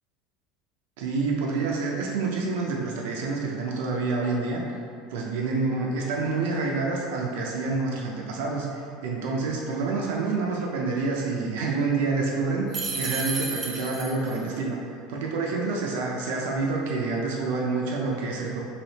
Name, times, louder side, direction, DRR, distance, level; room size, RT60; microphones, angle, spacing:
voice 1, 1.0-4.6 5.1-12.7 12.9-14.8 15.1-18.6, right 3 dB, 80° right, -1 dB, 0.5 m, -27 dB
sound 1, 12.7-14.4, right 3 dB, 30° right, 0.5 m, -32 dB
3.3 x 2.7 x 4.0 m, 2.5 s
supercardioid pair, 130°, 0 cm